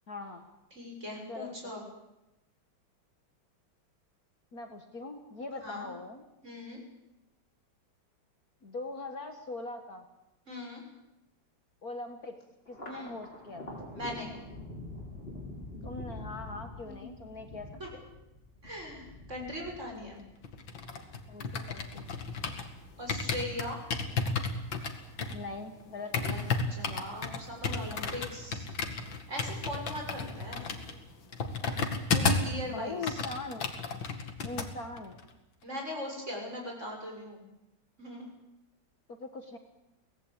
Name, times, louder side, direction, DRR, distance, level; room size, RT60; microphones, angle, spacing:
voice 1, 0.1-0.4 1.3-1.7 4.5-6.2 8.6-10.1 11.8-12.4 12.7-13.8 15.8-17.7 21.3-22.1 25.3-26.1 32.7-33.7 34.4-35.2 39.1-39.6, left 3 dB, 50° left, 5 dB, 2.0 m, -41 dB
voice 2, 0.7-1.8 5.6-5.9 6.4-6.8 10.5-10.8 12.9-13.1 13.9-14.3 16.9-17.2 17.8-17.9 18.6-20.2 23.0-23.8 26.1-26.4 26.7-28.6 29.3-30.7 32.1-33.2 35.6-37.5 38.0-38.3, left 1 dB, 35° right, 0 dB, 7.0 m, -40 dB
Thunder, 12.7-25.3 25.7-26.5 26.9-27.7, left 1 dB, 25° left, 6.4 m, -47 dB
sound 1, 20.4-22.7 23.1-32.6 32.9-34.7 35.0-35.2, left 4 dB, 70° left, 2.7 m, -33 dB
24.0 x 18.0 x 8.9 m, 0.92 s
omnidirectional pair, 2.2 m